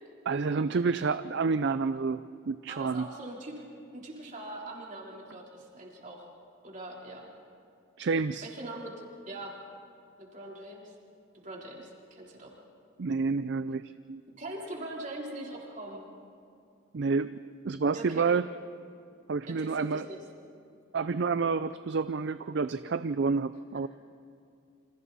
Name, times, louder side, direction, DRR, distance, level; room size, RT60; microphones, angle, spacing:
voice 1, 0.3-3.1 8.0-8.5 13.0-14.2 16.9-17.3 17.6-18.5 19.3-20.1 20.9-23.9, right 4 dB, 55° right, 12 dB, 0.4 m, -29 dB
voice 2, 2.7-3.6 3.9-6.3 6.6-7.3 8.4-8.9 9.3-9.5 10.2-10.9 11.3-12.5 14.4-16.1 17.9-18.3 19.5-20.2, right 1 dB, 35° right, -2 dB, 3.7 m, -42 dB
29.0 x 26.5 x 4.2 m, 2.5 s
head